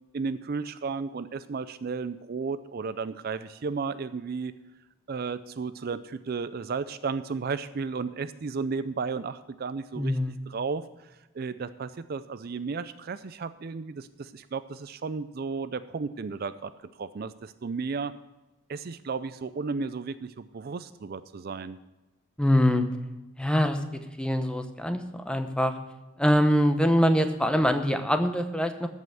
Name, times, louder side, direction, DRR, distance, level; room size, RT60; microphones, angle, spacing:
voice 1, 0.1-4.5 5.1-10.2 10.5-16.7 17.0-18.1 18.7-21.8, right 4 dB, 45° right, 13 dB, 0.4 m, -33 dB
voice 2, 10.0-10.4 22.4-22.8 23.4-23.8 24.2-25.7 26.2-28.9, equal, 5° left, 7 dB, 0.8 m, -24 dB
14.0 x 5.6 x 7.7 m, 1.1 s
head